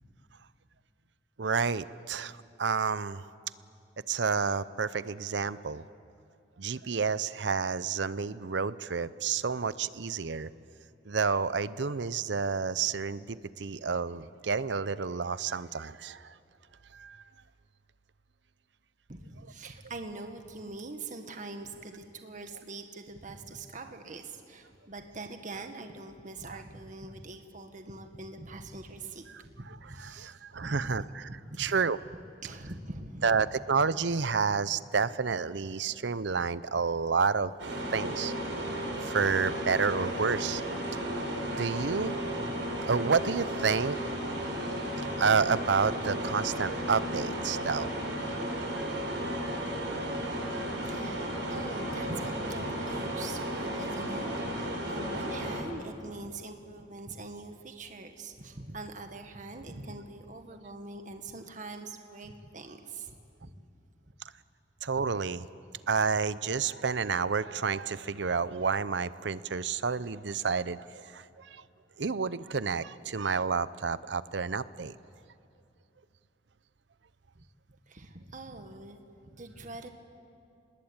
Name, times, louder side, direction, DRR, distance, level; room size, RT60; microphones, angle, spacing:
voice 1, 1.4-3.2 4.1-5.8 6.6-10.5 11.1-16.4 16.9-17.2 26.5-26.6 29.7-31.3 31.6-32.0 33.2-37.5 37.9-38.3 39.0-40.7 41.0-41.3 41.6-42.1 42.9-44.0 45.2-47.9 48.7-49.6 50.5-50.7 64.8-65.5 65.9-71.6 72.0-75.0, right 5 dB, 70° right, 16 dB, 0.7 m, -30 dB
voice 2, 19.1-31.0 31.3-31.6 32.4-33.3 50.8-63.2 63.4-63.5 77.9-79.0 79.3-79.9, right 2 dB, 45° right, 6 dB, 1.6 m, -43 dB
sound 1, 37.6-55.6, right 1 dB, 85° right, 6.4 m, -34 dB
29.5 x 20.5 x 8.9 m, 2.6 s
head